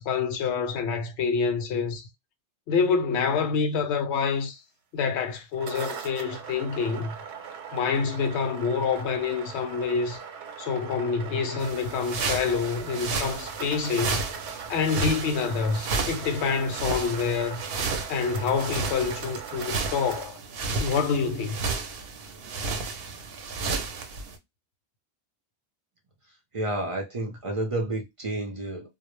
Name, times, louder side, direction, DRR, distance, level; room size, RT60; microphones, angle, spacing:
voice 1, 0.0-2.1 2.7-4.6 4.9-7.1 7.7-10.2 10.6-14.2 14.7-17.6 18.1-20.4 20.8-21.6, left 5 dB, 80° left, 0.9 m, -27 dB
sound 1, 5.4-20.2, right 6 dB, 90° right, 1.0 m, -40 dB
sound 2, 11.6-24.4, right 4 dB, 65° right, 0.8 m, -33 dB
voice 2, 26.5-29.0, right 1 dB, 45° right, 0.4 m, -30 dB
2.1 x 2.0 x 3.0 m
omnidirectional pair, 1.1 m